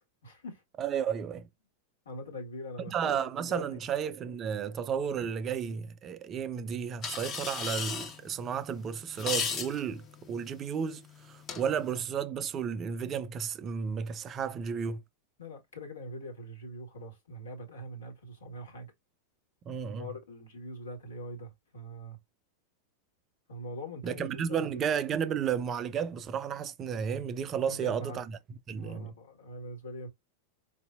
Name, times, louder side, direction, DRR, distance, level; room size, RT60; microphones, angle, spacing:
voice 1, 0.2-0.6 2.0-3.6 15.4-18.9 20.0-22.2 23.5-24.7 27.7-28.2 28.8-30.1, equal, 65° left, 1.5 m, -43 dB
voice 2, 0.8-1.5 2.9-15.0 19.7-20.1 24.0-28.3 28.7-29.1, right 7 dB, 30° right, 0.4 m, -33 dB
sound 1, 7.0-12.0, left 6 dB, 30° left, 0.9 m, -38 dB
4.5 x 2.7 x 2.4 m
figure-of-eight pair, 90°, 0 cm